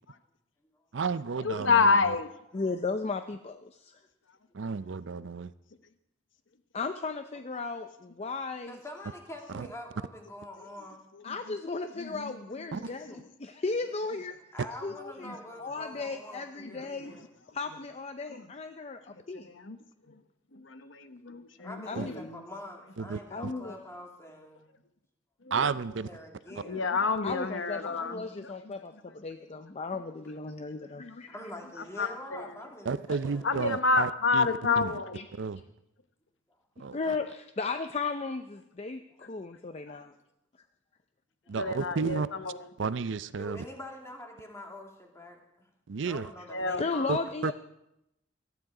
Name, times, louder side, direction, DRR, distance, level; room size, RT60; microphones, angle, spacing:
voice 1, 0.9-2.1 4.5-5.5 9.5-9.7 12.7-12.8 22.0-22.1 23.0-23.5 25.5-26.1 26.6-26.7 32.9-34.5 34.8-34.9 35.3-35.6 36.8-37.2 41.5-42.3 42.8-43.6 45.9-46.3 47.1-47.5, right 5 dB, 70° right, 15 dB, 0.5 m, -32 dB
voice 2, 1.4-2.3 11.3-11.4 12.0-12.3 15.3-15.4 16.6-17.1 18.3-18.4 19.3-19.8 20.5-22.4 26.6-28.5 31.0-31.2 32.0-32.5 33.4-35.2 41.6-42.6 46.5-47.1, left 4 dB, 75° left, 10 dB, 1.0 m, -29 dB
voice 3, 2.5-4.0 6.7-8.8 11.2-14.4 14.8-17.1 17.5-19.5 21.9-22.3 23.3-23.8 27.2-31.3 35.1-35.2 36.9-40.1 46.8-47.5, left 4 dB, 35° left, 8 dB, 0.6 m, -35 dB
voice 4, 8.7-11.0 12.8-13.2 14.5-17.3 21.6-24.6 25.9-26.9 27.9-28.0 31.3-33.5 39.7-39.8 41.4-41.6 43.4-45.7 46.1-47.2, left 1 dB, 15° left, 1 dB, 2.5 m, -45 dB
18.5 x 13.0 x 4.9 m, 0.87 s
head